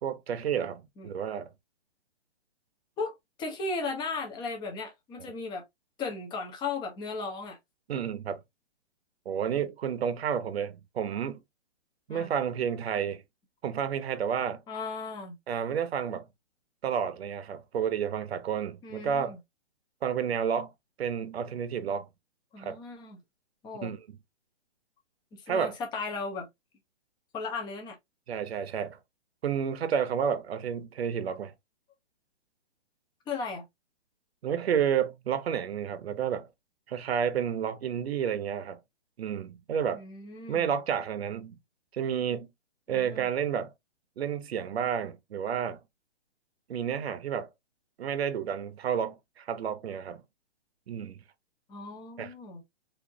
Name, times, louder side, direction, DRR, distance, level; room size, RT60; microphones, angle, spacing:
voice 1, 0.0-1.5 7.9-8.4 9.2-11.4 12.1-13.2 13.6-14.6 15.5-16.3 16.8-19.4 20.0-20.7 21.0-22.1 22.6-22.8 23.8-24.2 25.5-25.7 28.3-29.0 29.4-31.5 34.4-36.5 36.9-38.8 39.2-40.0 40.5-41.6 41.9-42.5 42.9-43.7 44.2-45.8 46.7-47.5 48.0-50.2 50.9-51.2 52.2-52.3, right 8 dB, 65° right, 1.0 m, -30 dB
voice 2, 3.4-5.6 6.0-7.6 9.4-9.5 12.1-12.3 14.7-15.4 18.8-19.4 22.5-23.2 23.6-23.9 25.3-26.5 27.3-28.0 33.3-33.6 39.9-40.8 42.9-43.3 51.7-52.6, left 4 dB, 15° left, 0.9 m, -36 dB
4.3 x 2.8 x 2.8 m
hypercardioid pair, 150°, 34 cm